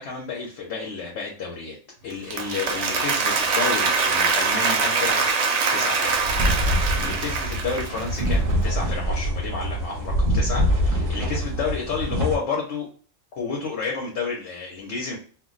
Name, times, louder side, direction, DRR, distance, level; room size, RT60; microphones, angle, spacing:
voice 1, 0.0-1.8 2.0-5.3 5.7-6.1 6.5-12.9 13.3-15.2, left 4 dB, 70° left, -2 dB, 1.0 m, -31 dB
Applause, 2.1-8.3, right 4 dB, 80° right, 1.0 m, -23 dB
sound 1, 6.1-12.4, equal, 50° right, 0.9 m, -24 dB
2.4 x 2.2 x 3.7 m, 0.41 s
omnidirectional pair, 1.2 m